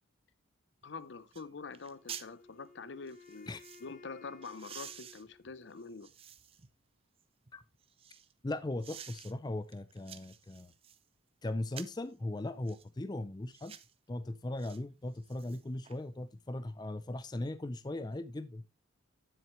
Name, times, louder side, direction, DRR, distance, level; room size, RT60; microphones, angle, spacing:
voice 1, 0.8-3.5 3.8-6.1, left 4 dB, 60° left, 0.6 m, -45 dB
sound 1, 0.8-0.9 1.3-1.5 1.7-2.3 3.1-3.9 4.4-6.7 7.2-8.3 8.8-9.3 9.7-11.0 11.7-12.1 12.7-12.9 13.5-13.9 14.6-14.8 15.1-16.0 16.3-16.4, right 9 dB, 30° right, 0.5 m, -50 dB
Wind instrument woodwind instrument, 1.9-6.0, left 4 dB, 40° left, 1.1 m, -58 dB
voice 2, 8.4-10.7 11.4-13.7 14.1-18.6, left 1 dB, 20° left, 0.4 m, -38 dB
9.7 x 7.6 x 3.1 m
head